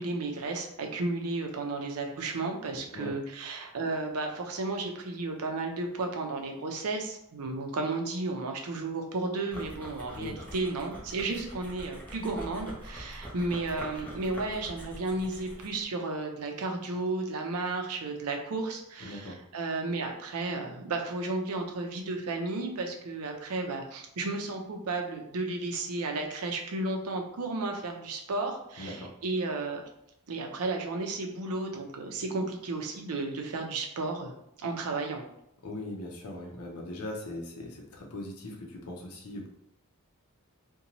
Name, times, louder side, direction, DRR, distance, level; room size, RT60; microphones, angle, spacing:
voice 1, 0.0-29.8 30.3-35.2, right 3 dB, 85° right, 3 dB, 0.5 m, -33 dB
sound 1, 9.5-15.8, equal, 5° left, 0.5 m, -44 dB
voice 2, 19.0-19.4 28.8-29.1 35.6-39.5, left 1 dB, 75° left, 0 dB, 0.6 m, -40 dB
2.6 x 2.2 x 2.9 m, 0.77 s
head